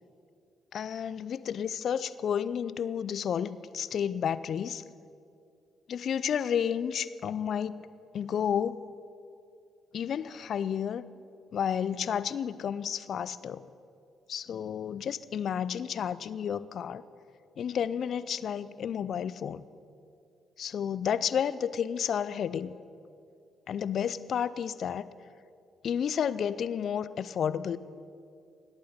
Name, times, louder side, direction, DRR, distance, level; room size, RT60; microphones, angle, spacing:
voice 1, 0.7-4.8 5.9-7.9 8.1-8.9 9.9-11.0 11.5-13.7 14.3-17.0 17.6-19.6 20.6-22.8 23.7-25.1 25.8-27.8, left 8 dB, 60° left, 17 dB, 0.4 m, -31 dB
18.5 x 8.6 x 5.8 m, 2.5 s
hypercardioid pair, 45°, 0 cm